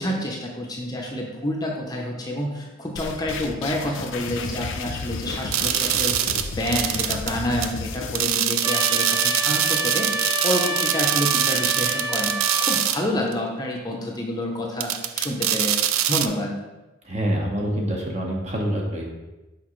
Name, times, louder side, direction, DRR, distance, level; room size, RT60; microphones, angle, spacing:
voice 1, 0.0-15.7 16.1-16.6, left 1 dB, 20° left, -1 dB, 0.6 m, -28 dB
sound 1, 3.0-8.3, left 4 dB, 70° left, 0.5 m, -33 dB
sound 2, 5.5-7.3 7.6-7.7 8.1-13.0 13.3-13.4 14.8-16.3, right 10 dB, 85° right, 0.4 m, -23 dB
Trumpet, 8.6-12.8, equal, 20° right, 0.4 m, -28 dB
voice 2, 17.0-19.1, equal, 35° right, -1 dB, 1.0 m, -26 dB
6.1 x 5.1 x 3.1 m, 1.1 s
head